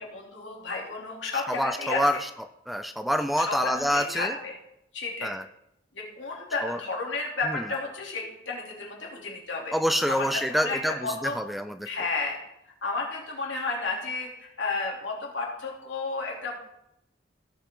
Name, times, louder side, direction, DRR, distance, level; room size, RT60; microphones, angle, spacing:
voice 1, 0.1-2.2 3.4-4.6 4.9-5.3 5.9-9.7 10.1-11.4 11.8-12.4 12.8-16.6, left 3 dB, 75° left, -1 dB, 3.0 m, -32 dB
voice 2, 1.5-2.3 2.7-4.4 5.2-5.4 6.6-6.8 7.5-7.6 9.7-11.9, equal, ahead, 9 dB, 0.3 m, -27 dB
16.5 x 7.6 x 3.8 m, 0.81 s
head